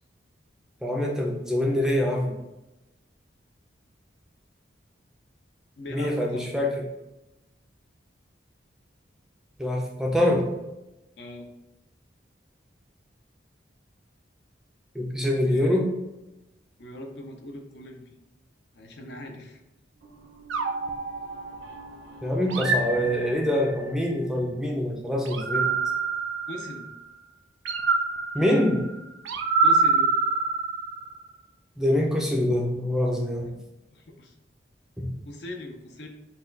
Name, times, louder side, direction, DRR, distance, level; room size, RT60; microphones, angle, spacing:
voice 1, 0.8-2.4 5.9-6.7 9.6-10.5 14.9-15.9 22.2-25.7 28.3-28.8 31.8-33.6 35.0-35.1, left 1 dB, 5° right, -1 dB, 0.4 m, -25 dB
voice 2, 5.8-6.4 11.2-11.5 15.4-15.8 16.8-18.1 18.7-19.6 26.5-26.9 29.6-30.1 33.9-34.3 35.2-36.1, left 1 dB, 65° left, 2 dB, 0.6 m, -40 dB
sound 1, 19.9-25.0, equal, 70° right, 0.8 m, -48 dB
sound 2, 20.5-21.9 22.5-23.8 25.3-27.0 27.6-31.2, right 4 dB, 85° right, 0.4 m, -26 dB
4.1 x 2.3 x 3.9 m, 0.96 s
head